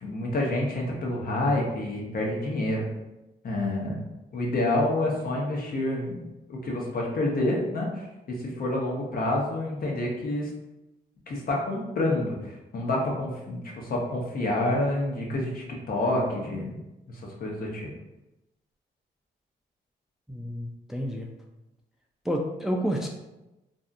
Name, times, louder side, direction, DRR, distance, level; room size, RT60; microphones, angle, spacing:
voice 1, 0.0-2.9 3.4-3.9 4.3-10.5 11.3-16.8 17.1-17.9, left 1 dB, 55° left, -2 dB, 0.8 m, -28 dB
voice 2, 20.3-21.3 22.3-23.1, equal, ahead, 1 dB, 0.3 m, -29 dB
2.6 x 2.4 x 2.4 m, 0.99 s
supercardioid pair, 60°, 18 cm